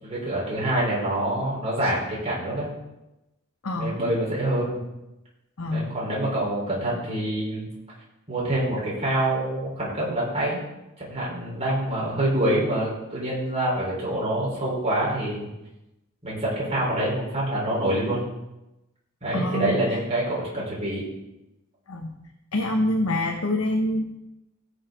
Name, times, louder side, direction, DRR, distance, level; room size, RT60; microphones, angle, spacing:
voice 1, 0.0-2.7 3.8-4.8 5.7-7.7 8.3-10.6 11.0-15.5 16.2-18.2 19.2-21.0, right 1 dB, 30° right, -6 dB, 4.4 m, -26 dB
voice 2, 3.6-4.0 5.6-5.9 19.3-20.0 21.9-22.1 22.5-24.0, left 1 dB, 70° left, 1 dB, 1.0 m, -26 dB
16.5 x 6.5 x 3.9 m, 0.96 s
head